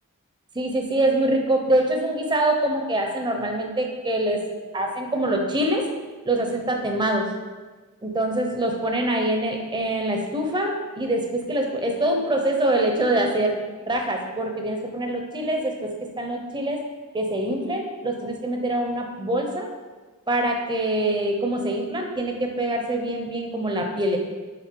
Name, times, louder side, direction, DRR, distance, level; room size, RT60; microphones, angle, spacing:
voice 1, 0.5-4.4 4.7-5.8 6.2-7.3 8.0-13.5 13.9-16.8 17.1-19.7 20.3-24.2, right 1 dB, 20° right, 3 dB, 0.8 m, -24 dB
7.8 x 3.9 x 4.7 m, 1.3 s
head